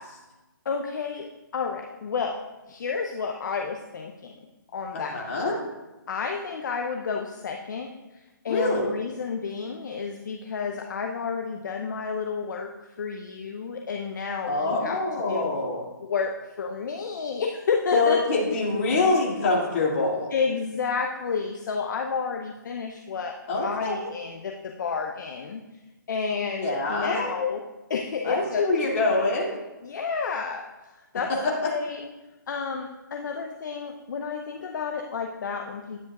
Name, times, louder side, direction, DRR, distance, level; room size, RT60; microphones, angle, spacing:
voice 1, 0.7-2.4 2.7-4.3 4.7-5.2 6.1-7.9 8.4-15.0 15.2-15.5 16.0-18.2 20.3-25.6 26.1-27.6 27.9-28.6 29.8-30.6 31.1-32.1 32.5-36.1, left 5 dB, 60° left, 3 dB, 0.7 m, -30 dB
voice 2, 4.9-5.6 8.5-8.9 14.5-15.8 17.9-20.3 23.5-24.1 26.6-27.3 28.2-29.5 31.3-31.5, left 3 dB, 40° left, -3 dB, 2.4 m, -25 dB
10.5 x 9.5 x 2.4 m, 1.1 s
hypercardioid pair, 145°, 11 cm